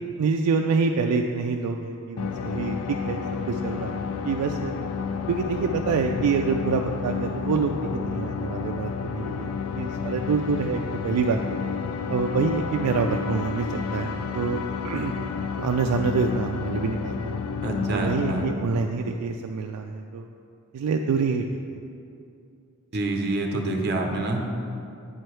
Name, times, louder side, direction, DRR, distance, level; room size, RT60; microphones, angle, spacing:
voice 1, 0.2-3.2 3.5-4.7 5.3-11.6 12.1-15.1 15.6-17.3 17.9-20.3 20.7-21.4, right 5 dB, 85° right, 5 dB, 0.3 m, -26 dB
sound 1, 2.2-18.5, left 5 dB, 70° left, 0.4 m, -30 dB
voice 2, 17.6-18.5 22.9-24.6, right 2 dB, 45° right, 2 dB, 0.7 m, -27 dB
8.7 x 4.5 x 3.2 m, 2.6 s
head